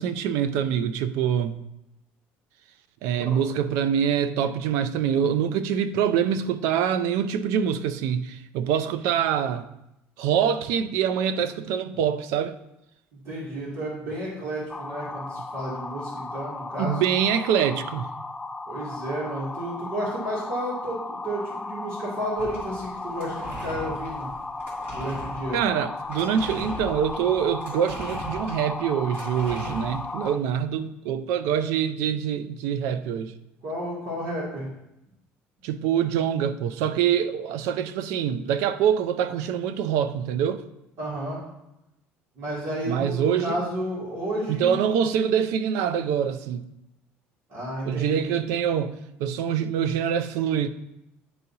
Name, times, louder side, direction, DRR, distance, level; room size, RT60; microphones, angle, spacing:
voice 1, 0.0-1.6 3.0-9.7 10.2-12.5 16.8-18.1 25.5-33.3 35.6-40.6 42.8-43.6 44.5-46.7 47.9-50.7, right 8 dB, 85° right, 0.5 m, -25 dB
voice 2, 13.2-17.0 18.7-24.3 24.9-25.6 33.6-34.7 41.0-41.4 42.4-44.7 47.5-48.3, right 1 dB, 65° right, 2.6 m, -32 dB
sound 1, 14.7-30.4, left 2 dB, 10° left, 0.3 m, -35 dB
sound 2, 22.4-30.3, right 1 dB, 45° right, 2.5 m, -40 dB
10.5 x 4.0 x 2.8 m
cardioid pair, 115°, 5 cm